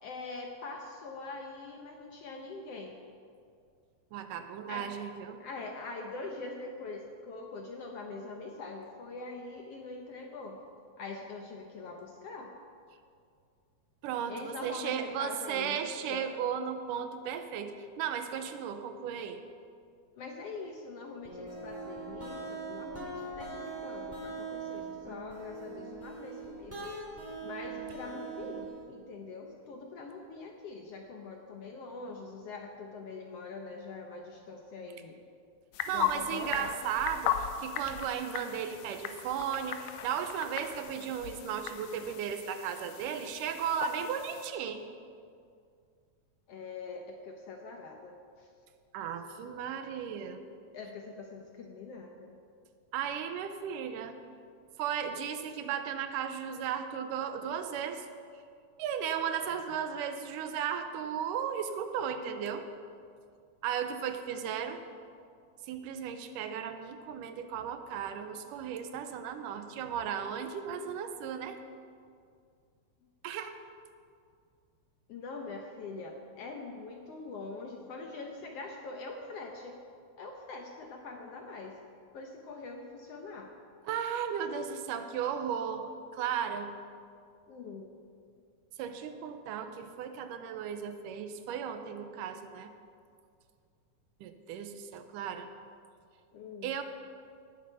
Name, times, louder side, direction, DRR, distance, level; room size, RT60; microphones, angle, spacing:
voice 1, 0.0-3.0 4.7-4.9 5.4-10.6 11.0-12.5 14.3-16.3 20.2-26.9 27.4-35.2 35.9-36.9 46.5-48.1 48.4-48.5 50.7-52.3 75.1-79.8 80.2-81.8 82.1-83.5 87.5-88.0 96.3-96.7, left 3 dB, 70° left, 2 dB, 1.5 m, -43 dB
voice 2, 4.1-5.4 14.0-19.4 35.9-44.9 48.9-50.4 52.9-54.2 54.8-58.1 58.8-62.7 63.6-64.8 65.7-71.6 73.2-73.5 83.9-86.7 88.8-92.7 94.2-95.5 96.6-96.8, right 8 dB, 85° right, 8 dB, 2.3 m, -35 dB
sound 1, 21.2-28.8, right 3 dB, 5° right, 3.2 m, -41 dB
sound 2, 35.7-44.5, left 9 dB, 90° left, 2.2 m, -38 dB
18.0 x 7.6 x 5.5 m, 2.3 s
omnidirectional pair, 3.7 m